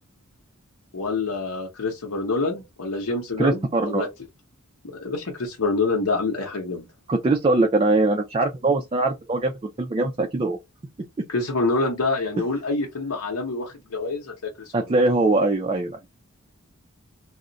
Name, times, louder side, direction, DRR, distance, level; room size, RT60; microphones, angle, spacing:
voice 1, 0.9-4.1 5.0-6.9 11.3-14.5 14.8-14.9, left 3 dB, 85° left, 0.9 m, -26 dB
voice 2, 3.4-4.1 7.1-10.6 14.7-16.0, right 2 dB, 25° right, 0.3 m, -22 dB
2.4 x 2.1 x 3.8 m
head